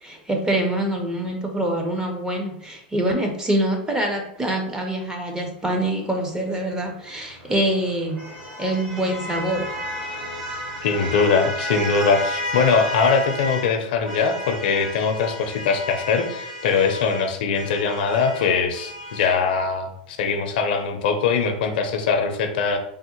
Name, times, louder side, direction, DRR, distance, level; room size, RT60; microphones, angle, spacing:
voice 1, 0.0-8.3 8.6-9.7, right 1 dB, 10° right, 2 dB, 0.6 m, -25 dB
sound 1, 7.1-13.7 14.0-19.4, equal, 50° right, 1.3 m, -32 dB
voice 2, 10.8-22.8, left 5 dB, 70° left, 6 dB, 0.5 m, -22 dB
3.3 x 2.1 x 2.9 m, 0.75 s
hypercardioid pair, 115°, 5 cm